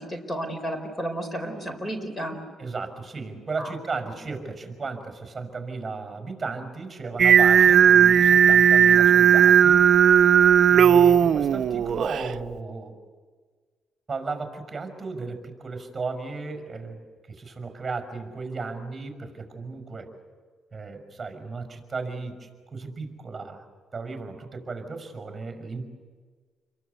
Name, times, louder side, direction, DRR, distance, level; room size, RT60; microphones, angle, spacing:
voice 1, 0.0-2.4 3.6-3.7, right 1 dB, 20° left, 7 dB, 4.7 m, -32 dB
voice 2, 2.6-9.8 10.7-13.0 14.1-17.0 17.3-20.1 20.7-23.6 23.9-25.8, right 4 dB, 25° right, 6 dB, 5.9 m, -35 dB
Singing, 7.2-12.3, right 8 dB, 60° right, 0.7 m, -16 dB
29.5 x 23.0 x 8.3 m, 1.5 s
cardioid pair, 90°, 0 cm